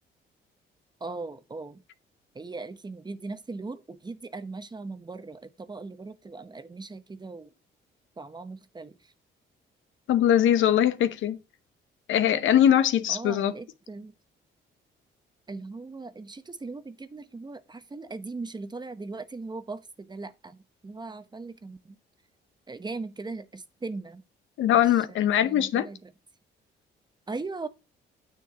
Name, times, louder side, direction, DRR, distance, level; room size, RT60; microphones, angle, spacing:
voice 1, 1.0-1.8 2.3-7.5 8.2-9.1 13.1-14.1 15.5-20.6 20.8-22.0 22.7-24.2 25.1-26.1 27.3-27.7, right 3 dB, 20° right, 0.8 m, -39 dB
voice 2, 10.1-11.4 12.1-13.5 24.6-25.9, left 10 dB, 75° left, 0.8 m, -21 dB
9.5 x 6.3 x 3.7 m
cardioid pair, 90°, 20 cm